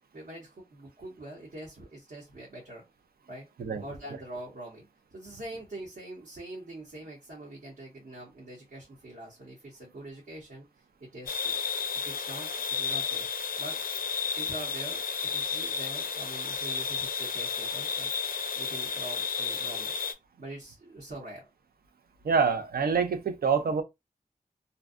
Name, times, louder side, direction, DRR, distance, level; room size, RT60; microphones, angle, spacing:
voice 1, 0.1-2.8 3.3-3.5 3.8-10.6 11.0-11.6 11.9-13.3 13.6-13.8 14.4-19.9 20.4-21.5, right 1 dB, 65° right, 0.9 m, -44 dB
sound 1, 11.3-20.1, left 6 dB, 75° left, 0.4 m, -32 dB
voice 2, 22.2-23.8, right 5 dB, 85° right, 0.5 m, -26 dB
2.6 x 2.1 x 2.4 m
wide cardioid pair, 100°, 15 cm